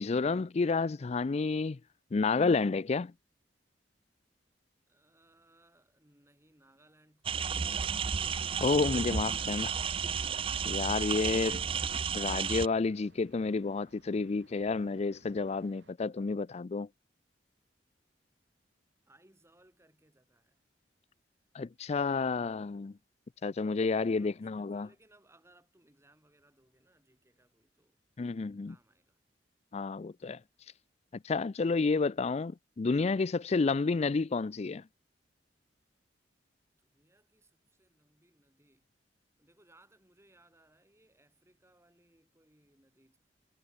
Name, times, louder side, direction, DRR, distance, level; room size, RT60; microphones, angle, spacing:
voice 1, 0.0-1.8 2.1-3.1 8.6-9.8 10.7-11.7 12.1-16.9 21.5-22.9 23.4-24.9 28.2-28.7 29.7-30.4 31.2-34.8, left 4 dB, 35° left, 0.4 m, -30 dB
voice 2, 4.9-7.9 19.0-20.6 23.7-28.0 28.6-29.2 36.8-38.9 39.4-43.2, right 1 dB, 15° right, 6.3 m, -66 dB
sound 1, 7.2-12.7, right 6 dB, 30° right, 0.4 m, -32 dB
sound 2, 7.4-15.9, right 2 dB, 85° right, 3.8 m, -62 dB
head